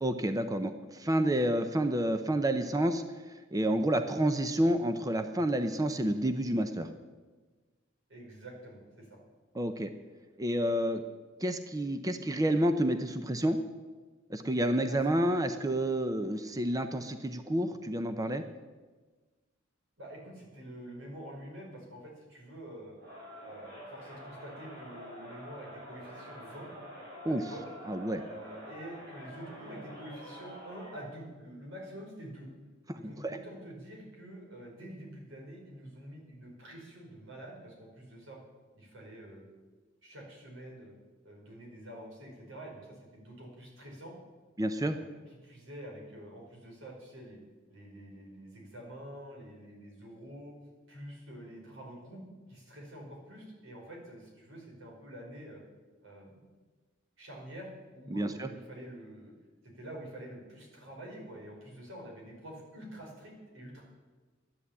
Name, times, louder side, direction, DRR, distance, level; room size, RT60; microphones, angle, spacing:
voice 1, 0.0-3.0 3.5-6.9 9.5-9.9 10.4-11.0 11.4-13.6 14.3-18.4 27.3-27.4 27.9-28.2 32.9-33.4 44.6-45.0 58.1-58.5, right 1 dB, 20° right, 8 dB, 0.7 m, -29 dB
voice 2, 8.1-9.2 14.9-15.1 20.0-23.0 23.4-26.7 27.2-27.6 28.3-32.5 32.9-38.4 38.7-39.4 40.0-40.9 41.2-44.1 44.7-47.4 47.7-50.5 50.9-52.2 52.5-55.6 56.0-56.3 57.2-59.3 59.6-63.8, right 1 dB, 90° right, -1 dB, 5.3 m, -47 dB
Crowd, 23.0-31.1, equal, 60° right, 6.1 m, -47 dB
12.5 x 10.5 x 8.5 m, 1.3 s
head